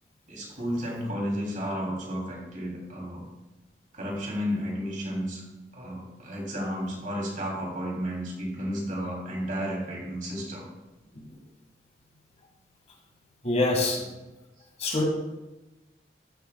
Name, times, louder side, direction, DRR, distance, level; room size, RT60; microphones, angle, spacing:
voice 1, 0.3-3.3 3.9-5.4 5.7-10.7, equal, 50° right, -2 dB, 3.0 m, -32 dB
voice 2, 13.4-14.0 14.8-15.0, left 2 dB, 40° left, 0 dB, 1.7 m, -24 dB
13.5 x 7.9 x 2.3 m, 1.1 s
head